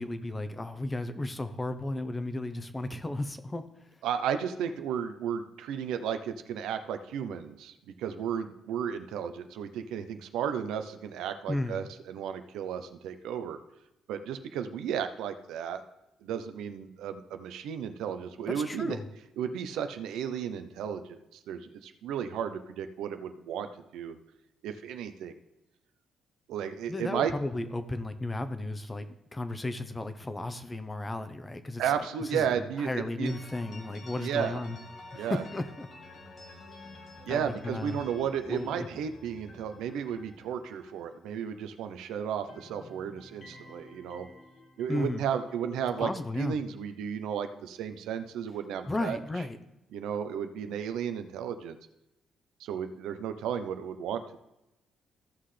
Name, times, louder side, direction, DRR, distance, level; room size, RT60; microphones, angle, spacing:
voice 1, 0.0-3.6 11.5-11.8 18.5-19.1 26.9-31.8 32.2-34.8 35.1-35.9 37.3-38.0 38.5-38.9 44.9-45.2 46.0-46.5 48.9-49.6, left 2 dB, 20° left, 10 dB, 0.8 m, -34 dB
voice 2, 4.0-13.6 14.1-15.8 16.2-19.0 19.4-24.2 24.6-25.3 26.5-27.3 31.8-33.3 34.2-34.6 35.1-35.4 37.3-44.3 44.8-46.1 46.4-49.2 49.9-51.8 52.6-54.4, right 8 dB, 85° right, 9 dB, 0.6 m, -34 dB
sound 1, 33.3-42.0 42.3-46.4, left 2 dB, 55° left, 1.6 m, -51 dB
15.0 x 5.7 x 3.3 m, 0.92 s
cardioid pair, 90°, 0 cm